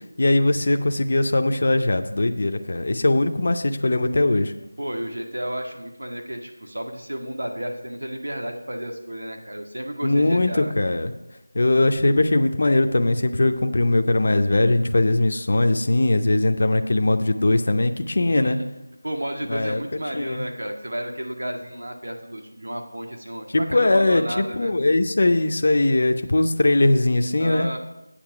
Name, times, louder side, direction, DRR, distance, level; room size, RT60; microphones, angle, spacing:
voice 1, 0.2-4.5 10.0-11.1 11.5-18.6 19.5-19.8 20.1-20.4 23.5-27.7, left 2 dB, 35° left, 7 dB, 0.5 m, -20 dB
voice 2, 4.8-10.7 18.3-18.6 19.0-24.7 27.4-27.8, right 1 dB, 90° right, 3 dB, 1.7 m, -32 dB
8.6 x 7.6 x 4.8 m, 0.95 s
figure-of-eight pair, 180°, 0 cm